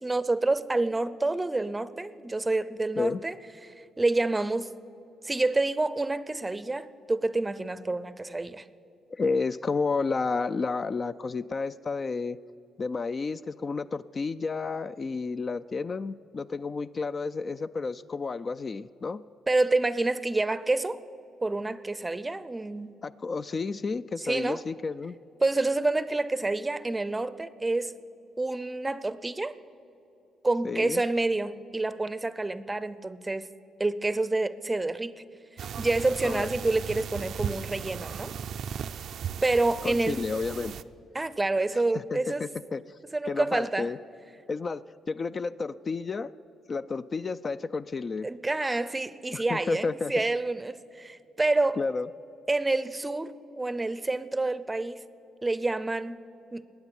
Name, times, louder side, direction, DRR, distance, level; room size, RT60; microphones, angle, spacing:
voice 1, 0.0-3.4 3.6-4.7 5.2-8.6 19.5-21.0 21.4-23.0 24.2-24.6 25.4-27.9 28.4-29.6 30.4-33.5 33.8-35.2 35.8-38.3 39.4-40.2 41.1-42.4 43.1-43.9 48.2-51.8 52.5-55.0 55.4-56.2 56.5-56.6, right 2 dB, 15° right, 16 dB, 0.6 m, -28 dB
voice 2, 9.1-12.4 12.8-19.2 23.0-25.1 30.6-31.0 36.2-36.5 39.8-40.7 41.7-43.0 43.3-44.0 44.5-46.3 46.7-48.3 49.3-50.1 51.8-52.1, left 4 dB, 35° left, 13 dB, 0.3 m, -31 dB
sound 1, 35.6-40.8, right 8 dB, 65° right, 0.4 m, -36 dB
21.0 x 9.0 x 7.1 m, 3.0 s
cardioid pair, 90°, 0 cm